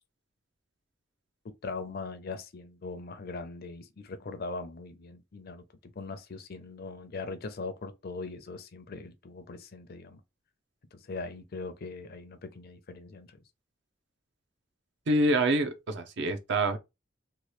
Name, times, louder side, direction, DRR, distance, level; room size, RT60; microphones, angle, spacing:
voice 1, 1.6-10.2 10.9-13.4, left 3 dB, 55° left, 0.5 m, -40 dB
voice 2, 15.1-16.8, right 1 dB, 65° right, 0.6 m, -26 dB
2.9 x 2.3 x 3.0 m
head